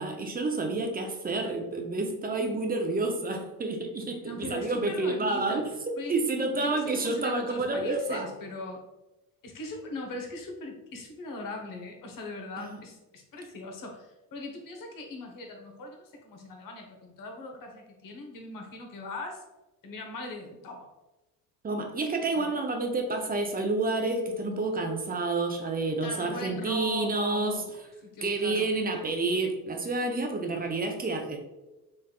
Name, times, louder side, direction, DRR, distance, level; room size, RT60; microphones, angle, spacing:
voice 1, 0.0-5.6 6.1-8.3 12.6-12.8 21.6-27.6 28.2-31.4, right 3 dB, 20° right, 3 dB, 0.6 m, -29 dB
voice 2, 4.2-5.6 6.0-6.1 6.6-8.8 9.4-19.4 19.8-20.9 22.3-22.5 26.0-27.7 28.0-28.7, left 2 dB, 45° left, 3 dB, 1.0 m, -40 dB
3.4 x 3.4 x 2.3 m, 1.0 s
hypercardioid pair, 65°, 45 cm